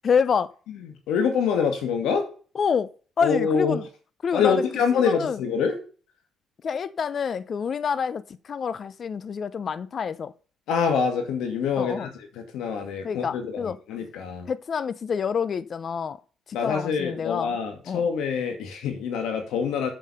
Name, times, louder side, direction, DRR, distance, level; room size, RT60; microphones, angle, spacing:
voice 1, 0.0-0.5 2.5-2.9 3.2-3.8 4.2-4.6 4.9-5.4 6.6-10.3 11.8-12.1 13.0-13.8 14.5-16.2 16.6-17.6 17.9-18.0, left 6 dB, 50° left, 0.7 m, -27 dB
voice 2, 0.7-2.2 3.2-3.8 4.3-5.7 10.7-14.5 16.5-19.9, left 6 dB, 90° left, 2.3 m, -25 dB
7.7 x 7.1 x 5.6 m
cardioid pair, 90°, 0 cm